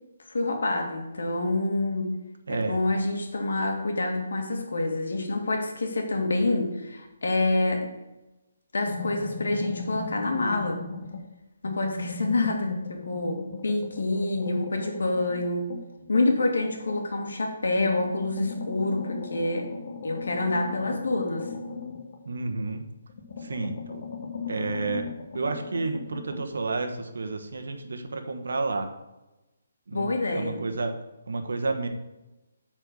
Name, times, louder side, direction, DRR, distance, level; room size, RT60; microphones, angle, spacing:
voice 1, 0.3-2.1 2.5-7.9 8.7-10.8 11.6-15.7 16.1-19.7 20.0-21.5 29.9-30.6, left 2 dB, 85° left, 2 dB, 2.1 m, -27 dB
voice 2, 2.5-2.8 22.2-22.8 23.4-24.0 24.5-25.1 25.3-28.9 29.9-30.9 31.3-31.9, right 3 dB, 80° right, 6 dB, 1.2 m, -30 dB
sound 1, 8.9-11.3 11.6-17.3 17.7-22.8 23.1-26.5, left 4 dB, 35° left, 1.0 m, -38 dB
8.6 x 4.5 x 6.7 m, 1.0 s
hypercardioid pair, 175°, 0 cm